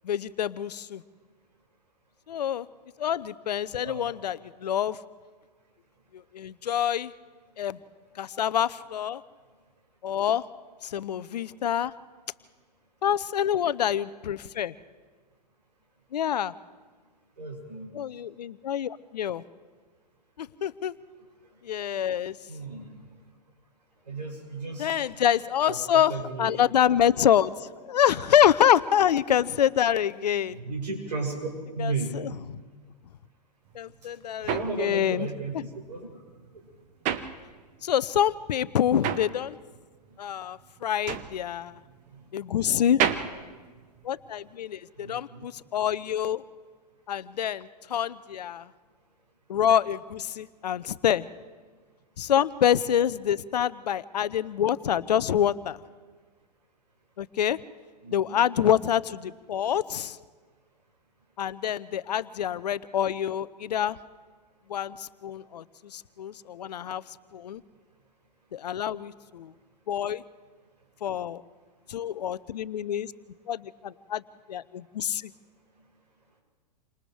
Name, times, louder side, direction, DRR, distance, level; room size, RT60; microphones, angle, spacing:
voice 1, 0.0-1.0 2.3-2.7 3.0-5.0 6.1-7.1 7.6-7.8 8.1-9.2 10.0-10.4 10.8-11.9 13.0-14.7 16.1-16.5 17.9-19.4 20.4-21.0 21.6-22.4 24.8-30.6 31.8-32.3 33.7-35.3 35.5-35.6 37.8-39.6 40.2-41.8 42.3-43.0 44.0-46.4 47.1-48.7 49.5-51.3 52.2-55.8 57.2-57.6 58.1-60.2 61.4-64.0 64.7-67.6 68.5-69.5 69.9-70.2 71.0-71.4 71.9-73.1 73.5-74.2 74.5-75.3, left 10 dB, 75° left, 16 dB, 0.8 m, -26 dB
voice 2, 17.4-17.9 22.5-22.9 24.1-25.0 25.7-26.6 30.5-31.4 31.7-32.2 34.0-34.1 34.3-36.1 42.1-42.3 45.0-45.5 58.0-58.4, right 3 dB, 80° right, 0 dB, 7.4 m, -35 dB
sound 1, 33.7-38.0 38.3-44.5, right 9 dB, 35° right, 1.2 m, -33 dB
29.0 x 26.0 x 3.4 m, 1.4 s
hypercardioid pair, 105°, 21 cm